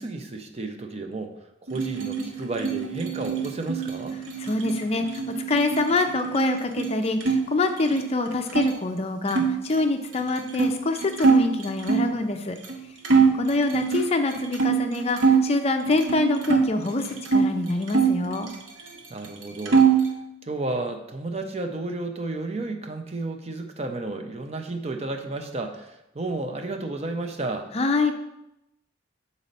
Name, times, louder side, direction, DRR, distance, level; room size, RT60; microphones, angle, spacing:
voice 1, 0.0-1.3 1.6-4.2 13.1-13.4 19.1-20.0 20.4-27.7, right 2 dB, 35° right, 5 dB, 0.6 m, -32 dB
sound 1, 1.7-7.4 7.7-8.7 9.3-12.2 12.6-12.8 13.0-15.5 15.9-17.5 17.9-19.0 19.2-20.1, right 5 dB, 90° right, 0.8 m, -24 dB
voice 2, 4.4-12.6 13.3-18.5 27.7-28.1, left 2 dB, 30° left, 6 dB, 0.4 m, -25 dB
6.8 x 4.1 x 4.1 m, 0.87 s
head